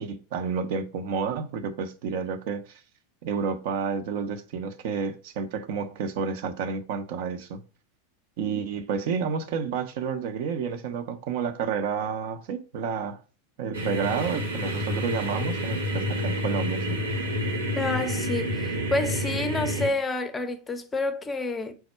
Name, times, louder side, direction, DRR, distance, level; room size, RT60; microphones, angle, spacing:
voice 1, 0.0-2.8 3.2-7.6 8.4-13.2 13.6-17.0, right 6 dB, 55° right, 0.4 m, -30 dB
sound 1, 13.7-19.9, equal, 80° right, 0.9 m, -29 dB
voice 2, 17.7-21.7, left 2 dB, 15° left, 0.5 m, -29 dB
4.4 x 2.1 x 4.2 m
figure-of-eight pair, 85°, 0 cm